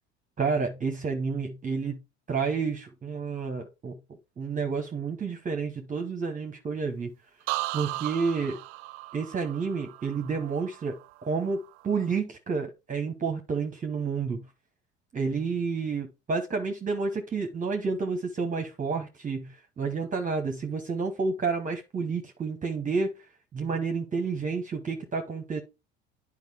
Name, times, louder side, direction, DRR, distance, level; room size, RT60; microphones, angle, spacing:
voice 1, 0.4-2.0 2.3-4.0 4.4-7.1 7.7-8.6 9.1-14.4 15.1-23.1 23.5-25.6, right 5 dB, 25° right, 1.0 m, -30 dB
sound 1, 7.5-11.3 11.6-12.1, right 19 dB, 75° right, 0.6 m, -36 dB
9.1 x 4.9 x 3.5 m
hypercardioid pair, 75°, 33 cm